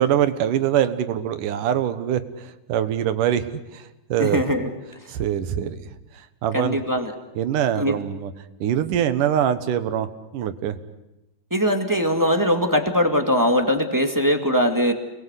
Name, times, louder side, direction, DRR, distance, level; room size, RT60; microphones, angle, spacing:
voice 1, 0.0-4.4 5.1-5.9 6.4-6.8 7.4-8.3 8.6-10.1 10.3-10.8, right 10 dB, 85° right, 11 dB, 2.9 m, -23 dB
voice 2, 4.2-4.7 6.5-7.1 7.7-7.9 11.5-14.9, equal, 10° right, 4 dB, 1.6 m, -21 dB
29.5 x 21.5 x 8.2 m, 0.98 s
omnidirectional pair, 3.6 m